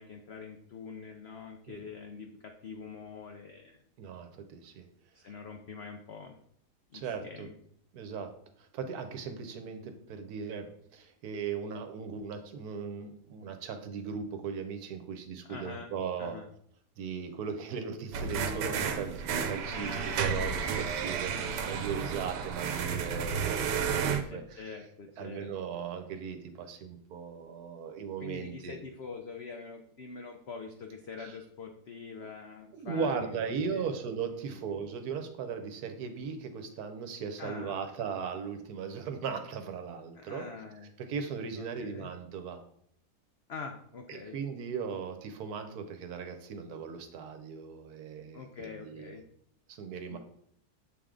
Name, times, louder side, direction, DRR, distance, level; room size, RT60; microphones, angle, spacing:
voice 1, 0.0-3.8 5.2-6.4 6.9-7.5 15.5-15.9 16.2-16.5 19.6-20.4 21.3-21.7 24.2-25.5 28.2-33.9 34.5-34.7 37.4-37.8 40.2-40.9 41.5-42.1 43.5-44.3 48.3-49.2 50.1-50.2, left 5 dB, 85° left, 4 dB, 0.5 m, -44 dB
voice 2, 4.0-4.9 5.2-5.3 6.9-7.5 7.9-8.3 8.6-16.4 17.0-24.8 25.2-28.7 31.1-31.4 32.7-40.5 41.0-42.6 44.1-49.1 49.7-50.2, right 6 dB, 70° right, 7 dB, 1.2 m, -38 dB
sound 1, 18.1-24.2, right 6 dB, 90° right, 1.2 m, -32 dB
7.5 x 3.4 x 3.7 m, 0.67 s
omnidirectional pair, 1.8 m